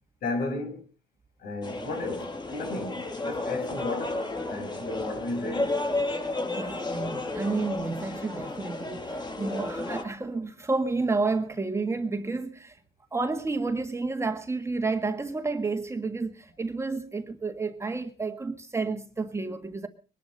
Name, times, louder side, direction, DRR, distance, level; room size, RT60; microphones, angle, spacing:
voice 1, 0.2-0.8 1.4-4.2 4.5-5.8, left 2 dB, 65° left, 6.1 m, -33 dB
sound 1, 1.6-10.0, left 2 dB, 25° left, 5.6 m, -32 dB
voice 2, 6.4-12.8 13.1-19.9, right 3 dB, 15° right, 1.7 m, -30 dB
22.5 x 11.5 x 5.4 m
cardioid pair, 110°, 17 cm